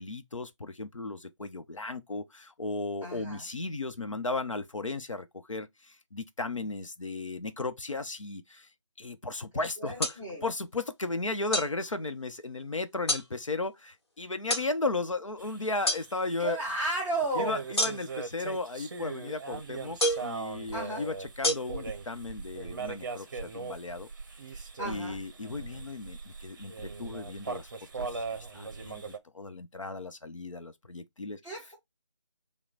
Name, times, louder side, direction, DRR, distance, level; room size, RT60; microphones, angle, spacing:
voice 1, 0.0-8.7 9.0-16.6 17.3-24.1 24.8-27.7 27.9-28.2 28.5-31.4, left 3 dB, 80° left, 0.8 m, -35 dB
voice 2, 3.0-3.4 9.8-10.4 16.4-17.6 20.7-21.0 24.8-25.1 31.4-31.7, right 2 dB, 10° left, 0.9 m, -33 dB
sound 1, 10.0-10.2 11.5-11.7 13.1-13.3 14.5-14.7 15.9-16.0 17.8-18.2 20.0-20.3 21.4-21.5, left 1 dB, 55° left, 1.2 m, -27 dB
sound 2, 15.4-29.2, right 4 dB, 40° right, 0.7 m, -40 dB
5.7 x 2.2 x 3.9 m
figure-of-eight pair, 160°, 16 cm